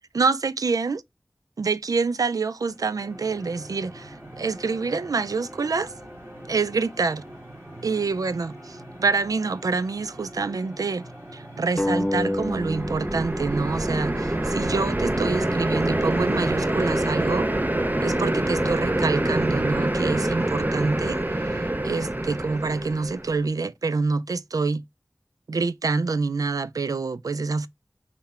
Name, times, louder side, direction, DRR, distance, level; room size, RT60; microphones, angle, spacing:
voice 1, 0.1-1.0 1.6-5.9 6.5-7.2 7.8-17.5 18.0-24.8 25.5-27.7, right 4 dB, 85° right, 0.3 m, -26 dB
sound 1, 2.6-17.9, right 1 dB, 45° right, 2.6 m, -43 dB
sound 2, 11.8-15.0, left 1 dB, 15° left, 0.4 m, -30 dB
sound 3, 12.0-23.4, right 1 dB, 30° right, 0.6 m, -26 dB
5.8 x 2.1 x 4.2 m
wide cardioid pair, 55°, 6 cm